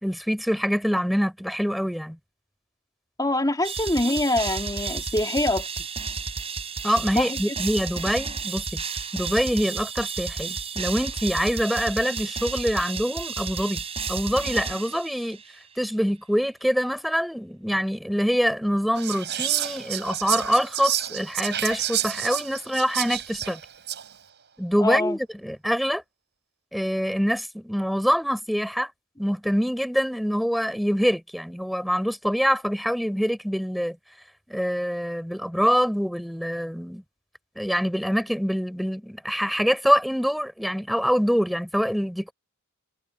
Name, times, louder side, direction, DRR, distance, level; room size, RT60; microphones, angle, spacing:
voice 1, 0.0-2.2 6.8-8.8 9.1-13.8 14.1-15.4 15.8-23.6 24.6-26.0 26.7-28.9 29.2-34.0 34.5-37.0 37.6-42.3, equal, ahead, 4.6 m, -25 dB
voice 2, 3.2-5.7 7.1-7.4 24.8-25.2, left 1 dB, 20° left, 2.7 m, -24 dB
sound 1, 3.6-15.5, right 5 dB, 30° right, 4.3 m, -32 dB
Whispering, 18.9-24.1, right 11 dB, 55° right, 6.4 m, -29 dB
head